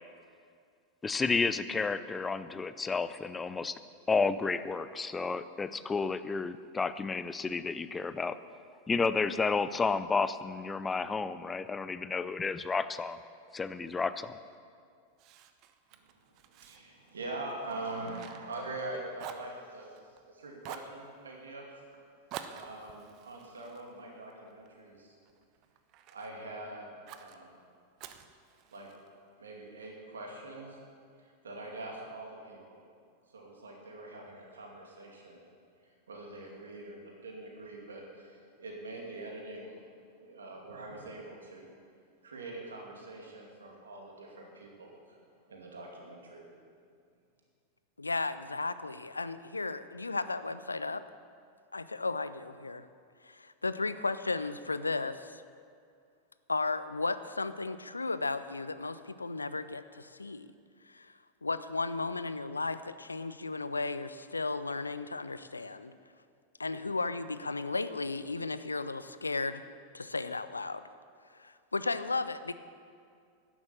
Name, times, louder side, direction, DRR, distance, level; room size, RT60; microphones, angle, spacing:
voice 1, 1.0-3.7 4.1-8.4 8.9-13.2 13.5-14.4, left 4 dB, 15° left, 13 dB, 0.5 m, -31 dB
Fire, 15.2-18.9 19.2-20.2 20.6-21.0 22.3-24.7 25.2-26.3 27.1-27.4 28.0-29.1, right 9 dB, 40° right, 0.8 m, -48 dB
voice 2, 16.5-19.9 20.3-21.6 22.5-25.1 26.1-27.5 28.7-28.9 29.4-30.8 31.4-32.8 33.3-35.4 36.1-39.8 40.2-41.7 42.2-45.2 45.5-46.5, right 2 dB, 70° right, -1 dB, 2.5 m, -43 dB
voice 3, 48.0-51.0 51.7-52.9 53.2-55.4 56.5-60.5 60.9-61.1 61.4-65.9 66.6-69.6 69.9-70.8 71.4-72.5, left 3 dB, 80° left, 13 dB, 0.5 m, -34 dB
12.0 x 10.5 x 7.1 m, 2.3 s
figure-of-eight pair, 90°, 0 cm